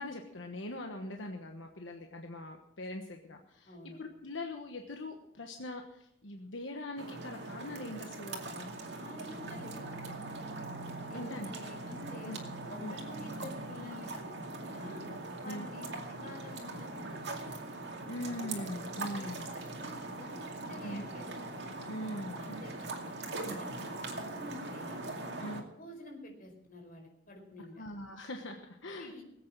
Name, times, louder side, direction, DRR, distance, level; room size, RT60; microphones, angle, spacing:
voice 1, 0.0-3.7 4.0-8.7 11.1-11.7 12.2-12.4 12.8-13.0 15.4-15.7 18.1-19.5 20.8-21.0 21.9-22.5 23.5-23.6 25.4-25.6 27.6-29.2, left 1 dB, 80° left, 3 dB, 1.3 m, -42 dB
voice 2, 3.6-4.0 9.0-10.0 11.1-12.4 12.6-15.0 15.4-17.6 19.1-19.3 19.5-20.4 20.7-21.3 22.4-25.0 25.8-27.8 29.0-29.2, left 1 dB, 45° left, 1 dB, 4.6 m, -49 dB
sound 1, 7.0-25.6, right 2 dB, 60° right, 2.4 m, -41 dB
20.0 x 8.6 x 6.2 m, 0.79 s
head